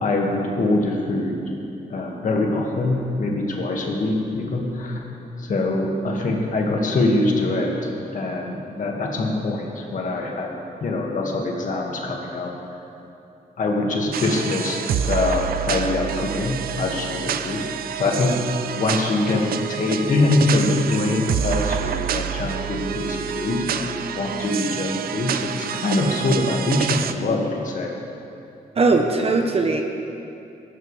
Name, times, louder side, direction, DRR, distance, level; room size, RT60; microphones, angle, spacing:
voice 1, 0.0-1.4 1.9-5.0 5.5-7.8 8.1-10.5 10.8-12.5 13.6-17.7 18.0-18.4 18.8-27.9, left 2 dB, 60° left, 0 dB, 1.9 m, -23 dB
sound 1, 14.1-27.1, right 8 dB, 75° right, 0.5 m, -28 dB
voice 2, 28.8-29.8, right 3 dB, 40° right, 4 dB, 0.9 m, -19 dB
15.0 x 13.0 x 3.3 m, 2.7 s
cardioid pair, 110°, 15 cm